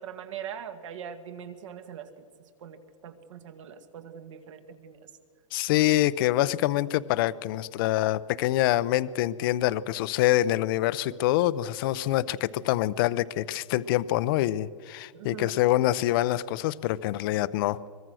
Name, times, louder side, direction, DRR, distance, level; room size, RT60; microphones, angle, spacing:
voice 1, 0.0-2.2 2.6-5.1 15.1-15.5, right 8 dB, 65° right, 8 dB, 1.9 m, -42 dB
voice 2, 5.5-17.9, left 14 dB, 40° left, 17 dB, 0.6 m, -25 dB
23.5 x 21.0 x 6.3 m, 2.1 s
hypercardioid pair, 155°, 17 cm